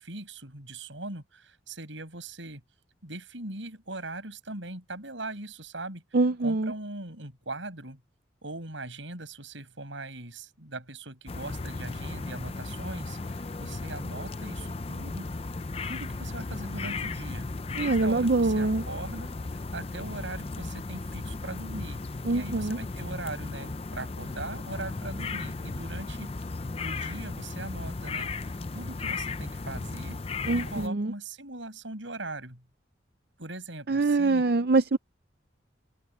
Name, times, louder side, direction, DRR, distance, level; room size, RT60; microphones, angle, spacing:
voice 1, 0.0-2.6 3.0-8.0 8.4-15.3 15.9-26.3 26.8-28.3 28.7-30.2 30.5-32.6 33.4-34.4, right 2 dB, 80° right, 6.5 m, -40 dB
voice 2, 6.1-6.7 17.8-18.8 22.3-22.8 30.5-31.1 33.9-35.0, right 3 dB, 50° right, 0.6 m, -24 dB
sound 1, 11.3-30.9, left 3 dB, 30° left, 0.5 m, -36 dB
head